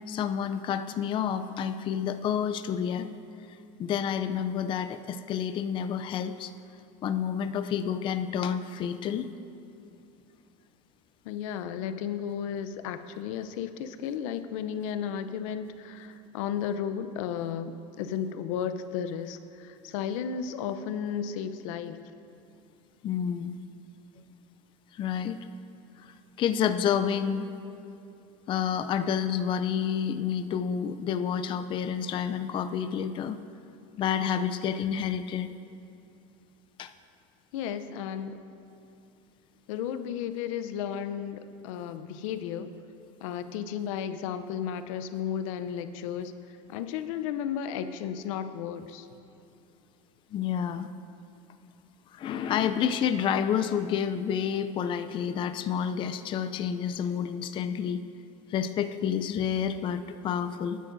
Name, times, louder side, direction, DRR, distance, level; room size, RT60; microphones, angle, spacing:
voice 1, 0.1-3.1 3.8-6.5 7.0-9.3 23.0-23.6 24.9-25.4 26.0-27.5 28.5-33.4 34.0-35.5 36.8-36.9 50.3-50.9 52.1-58.0 58.5-60.8, left 8 dB, 30° left, 9 dB, 0.4 m, -29 dB
voice 2, 11.3-22.0 37.5-38.4 39.7-42.7 43.2-46.3 46.7-49.1, left 8 dB, 80° left, 10 dB, 0.6 m, -34 dB
20.0 x 10.0 x 2.6 m, 2.7 s
supercardioid pair, 130°, 17 cm